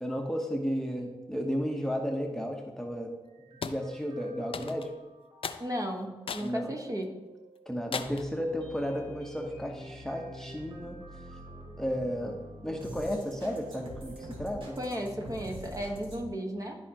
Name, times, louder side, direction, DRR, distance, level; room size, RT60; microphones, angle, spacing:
voice 1, 0.0-3.1 3.6-4.9 6.4-6.7 7.7-11.0 11.8-12.4 12.6-14.8, equal, 5° left, 2 dB, 1.0 m, -33 dB
sound 1, 3.2-16.2, equal, 55° right, 1.8 m, -46 dB
sound 2, 3.6-3.8 4.5-4.9 5.4-5.6 6.3-6.5 7.0-7.1 7.9-8.3, left 6 dB, 65° left, 0.5 m, -36 dB
voice 2, 5.6-7.1 14.8-16.8, equal, 35° right, 2 dB, 1.4 m, -34 dB
12.5 x 4.3 x 2.9 m, 1.1 s
cardioid pair, 55°, 10 cm